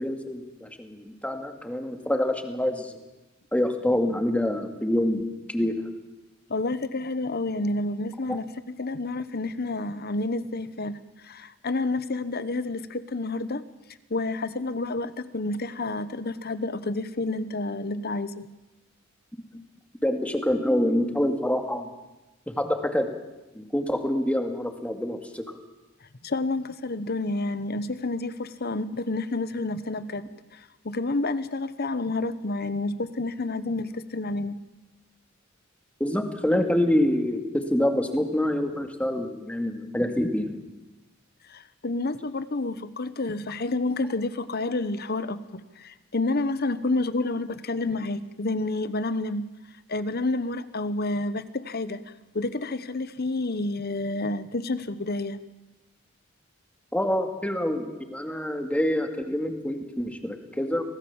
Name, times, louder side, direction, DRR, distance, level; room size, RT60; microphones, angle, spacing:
voice 1, 0.0-3.0 3.5-5.8 8.3-8.4 20.0-21.9 22.5-23.1 23.5-25.6 36.0-40.6 56.9-60.8, left 1 dB, 5° left, 5 dB, 2.2 m, -26 dB
voice 2, 6.5-11.0 11.2-13.6 14.1-18.5 26.2-30.2 30.5-34.6 41.5-49.4 49.9-52.0 52.3-55.4, left 2 dB, 50° left, 13 dB, 1.1 m, -29 dB
25.5 x 18.0 x 7.3 m, 1.0 s
head